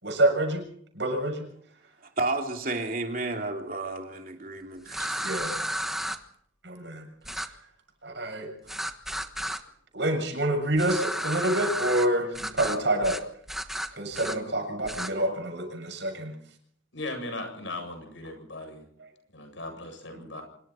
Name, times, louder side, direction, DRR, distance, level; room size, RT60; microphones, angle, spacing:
voice 1, 0.0-0.6 0.9-1.5 5.2-5.6 6.6-7.1 7.4-7.6 8.0-8.5 9.9-13.2 13.9-16.4 19.0-19.1 20.2-20.3, right 1 dB, 65° right, 3 dB, 7.2 m, -27 dB
voice 2, 2.2-5.2, right 2 dB, 45° right, 2 dB, 3.1 m, -31 dB
sound 1, 4.9-6.2 7.2-7.5 8.7-9.6 10.8-12.1 12.3-12.8 13.0-13.2 13.5-14.4 14.8-15.1, right 1 dB, ahead, 1.2 m, -32 dB
voice 3, 16.9-18.8 19.3-20.4, left 2 dB, 75° left, 5 dB, 8.0 m, -37 dB
25.5 x 23.5 x 4.4 m, 0.67 s
head